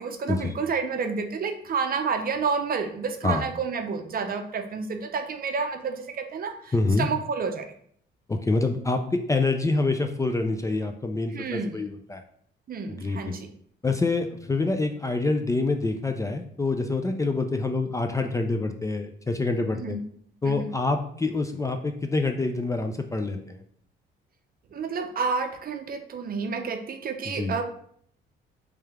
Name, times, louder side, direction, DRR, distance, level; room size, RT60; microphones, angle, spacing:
voice 1, 0.0-7.7 11.3-11.8 12.7-13.4 19.7-20.0 20.5-20.7 24.7-27.6, right 5 dB, 50° right, 6 dB, 0.6 m, -30 dB
voice 2, 6.7-7.1 8.3-12.2 12.9-13.3 13.8-20.0 20.4-23.6 27.3-27.5, left 3 dB, 15° left, 5 dB, 0.4 m, -26 dB
3.3 x 3.2 x 3.5 m, 0.62 s
cardioid pair, 90°, 20 cm